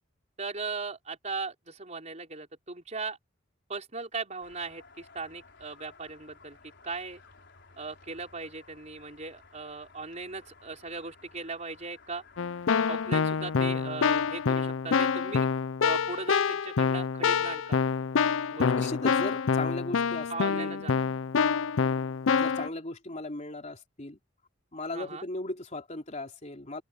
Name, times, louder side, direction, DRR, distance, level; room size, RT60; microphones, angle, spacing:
voice 1, 0.4-3.2 3.7-6.6 6.8-7.2 7.8-12.2 12.9-15.5 15.8-17.8 18.5-18.9 20.3-21.0 24.9-25.3, right 4 dB, 35° right, 5.0 m, -38 dB
sound 1, 4.4-14.5, left 4 dB, 60° left, 5.0 m, -56 dB
Keyboard (musical), 12.4-22.7, left 6 dB, 85° left, 0.5 m, -27 dB
voice 2, 18.8-20.8 22.3-24.2 24.7-26.8, left 2 dB, 35° left, 3.2 m, -37 dB
open air
head